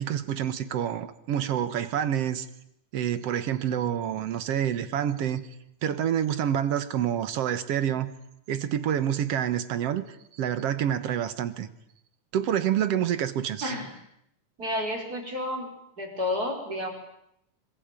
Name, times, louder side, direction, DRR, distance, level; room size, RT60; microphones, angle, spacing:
voice 1, 0.0-2.5 2.9-5.4 5.8-8.1 8.5-11.7 12.3-13.7, right 10 dB, 60° right, 13 dB, 2.0 m, -27 dB
voice 2, 14.6-16.9, left 1 dB, 30° right, 2 dB, 5.2 m, -31 dB
25.0 x 21.5 x 9.0 m, 0.77 s
omnidirectional pair, 3.5 m